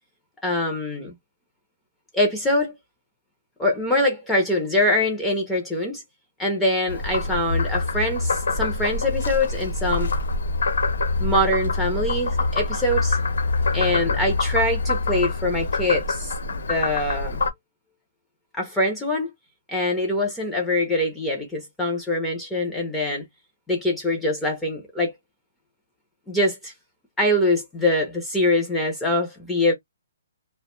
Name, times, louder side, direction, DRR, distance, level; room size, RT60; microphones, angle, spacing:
voice 1, 0.4-1.1 2.1-2.8 3.6-6.0 6.4-10.1 11.2-13.2 13.7-16.3 16.7-17.4 18.5-19.3 19.7-23.2 23.7-25.1 26.3-26.7 27.2-29.7, left 1 dB, 5° left, 0.4 m, -23 dB
Frog, 6.9-17.5, left 3 dB, 80° left, 0.9 m, -25 dB
2.4 x 2.1 x 2.9 m
hypercardioid pair, 175°, 0 cm